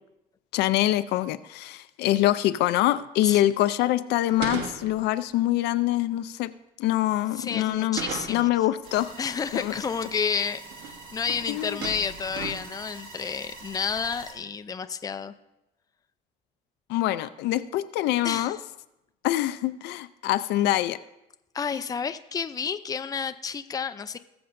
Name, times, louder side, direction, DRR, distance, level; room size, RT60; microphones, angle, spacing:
voice 1, 0.5-6.5 6.8-8.0 8.3-9.1 9.5-9.7 11.5-11.8 16.9-18.6 19.2-21.0, left 14 dB, 85° left, 12 dB, 0.5 m, -25 dB
sound 1, 4.3-5.3 7.6-8.6 10.3-10.4 10.7-11.0 11.3-11.5 11.8-12.8, right 5 dB, 85° right, 1.2 m, -36 dB
voice 2, 7.3-8.5 9.2-15.3 18.2-18.6 21.5-24.2, left 6 dB, 20° left, 10 dB, 0.4 m, -30 dB
sound 2, 8.8-14.3, right 3 dB, 65° right, 3.6 m, -44 dB
20.0 x 6.9 x 2.6 m, 0.90 s
cardioid pair, 110°, 17 cm